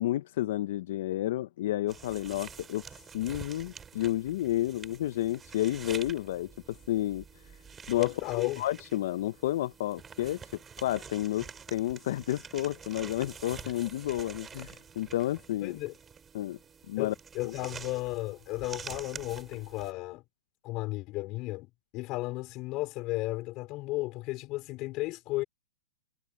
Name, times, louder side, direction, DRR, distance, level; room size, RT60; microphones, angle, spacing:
voice 1, 0.0-2.8 3.1-7.2 7.9-10.4 10.8-15.8 16.3-16.6 16.9-17.1 17.4-17.5, left 14 dB, 55° left, 0.7 m, -31 dB
sound 1, 1.9-19.9, right 6 dB, 15° right, 3.7 m, -47 dB
voice 2, 8.0-8.6 15.6-15.9 17.0-20.2 20.6-21.7 21.9-25.4, left 20 dB, 30° left, 4.6 m, -34 dB
hypercardioid pair, 150°, 0 cm